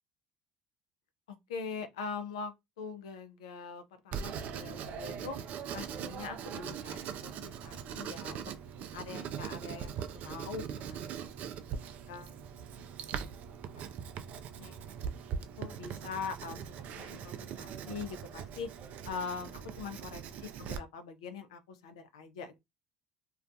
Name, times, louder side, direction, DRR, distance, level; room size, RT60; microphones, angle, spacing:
voice 1, 1.3-5.4 5.7-8.4 8.9-11.1 12.1-12.3 13.8-13.9 14.6-14.8 15.6-18.7 19.1-19.5 19.8-20.2 20.6-22.6, left 5 dB, 85° left, 0.4 m, -42 dB
Writing, 4.1-20.8, right 7 dB, 60° right, 0.3 m, -41 dB
2.3 x 2.2 x 2.5 m
hypercardioid pair, 70°, 3 cm